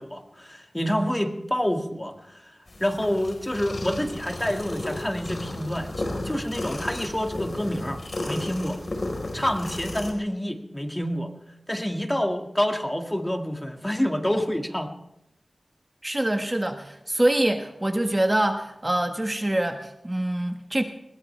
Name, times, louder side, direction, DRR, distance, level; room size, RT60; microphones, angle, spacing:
voice 1, 0.0-2.4 2.8-6.0 6.2-8.0 8.3-8.8 9.3-11.3 11.7-14.9, equal, 15° left, 4 dB, 2.0 m, -27 dB
sound 1, 2.7-10.1, left 1 dB, 50° left, 4.4 m, -33 dB
voice 2, 16.0-20.8, right 1 dB, 20° right, 5 dB, 1.4 m, -25 dB
21.0 x 20.5 x 3.4 m, 0.82 s
wide cardioid pair, 60°, 0 cm